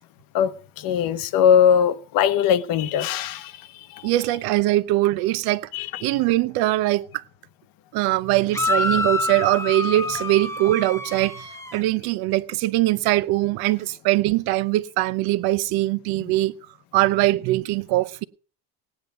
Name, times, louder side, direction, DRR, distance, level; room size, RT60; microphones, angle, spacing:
voice 1, 0.3-3.5 3.9-4.1 5.7-6.2, left 8 dB, 55° left, 1.1 m, -21 dB
voice 2, 4.0-5.7 6.0-7.0 7.9-11.4 11.7-16.5 16.9-18.2, right 17 dB, 60° right, 0.8 m, -21 dB
sound 1, 8.5-11.8, left 3 dB, 5° left, 1.0 m, -27 dB
17.5 x 9.6 x 5.3 m
cardioid pair, 145°, 41 cm